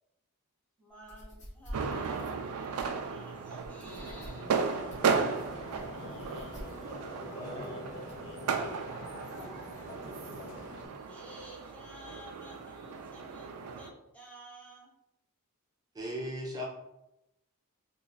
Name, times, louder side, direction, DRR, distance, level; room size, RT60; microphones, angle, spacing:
voice 1, 0.8-4.6 9.3-9.9 11.1-14.9, equal, 5° left, -4 dB, 0.9 m, -52 dB
sound 1, 0.9-8.3, equal, 30° left, 0.9 m, -49 dB
sound 2, 1.7-13.9, right 5 dB, 75° right, 0.4 m, -35 dB
sound 3, 3.8-10.9, left 1 dB, 90° left, 0.9 m, -45 dB
voice 2, 5.5-8.9 9.7-9.8 10.8-10.9, left 1 dB, 55° left, 4 dB, 0.4 m, -50 dB
voice 3, 15.9-16.6, equal, 15° right, -3 dB, 0.5 m, -36 dB
3.7 x 2.4 x 2.9 m, 0.88 s
head